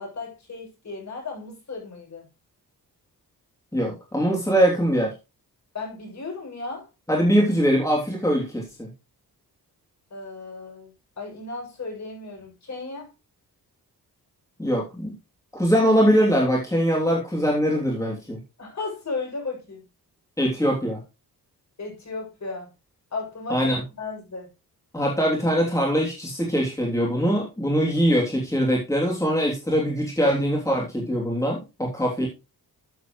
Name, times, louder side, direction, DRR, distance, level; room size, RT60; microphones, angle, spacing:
voice 1, 0.0-2.3 5.7-6.9 10.1-13.1 18.6-19.8 21.8-22.7 23.1-24.5, left 3 dB, 45° left, 0 dB, 7.3 m, -35 dB
voice 2, 3.7-5.1 7.1-8.9 14.6-15.1 15.5-18.4 20.4-21.0 23.5-23.8 24.9-32.3, equal, 10° left, -2 dB, 3.1 m, -22 dB
13.0 x 8.1 x 3.2 m, 0.27 s
cardioid pair, 105°, 37 cm